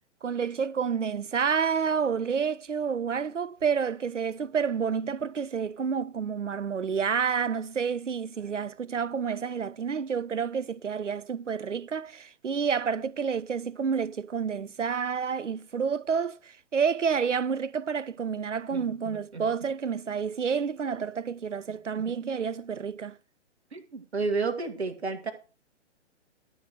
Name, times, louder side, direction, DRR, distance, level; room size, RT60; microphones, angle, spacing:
voice 1, 0.2-23.2, right 6 dB, 90° right, 0.5 m, -29 dB
voice 2, 18.7-19.5 21.9-22.1 23.7-25.3, right 4 dB, 65° right, 2.0 m, -32 dB
12.5 x 4.7 x 6.4 m
figure-of-eight pair, 125°, 36 cm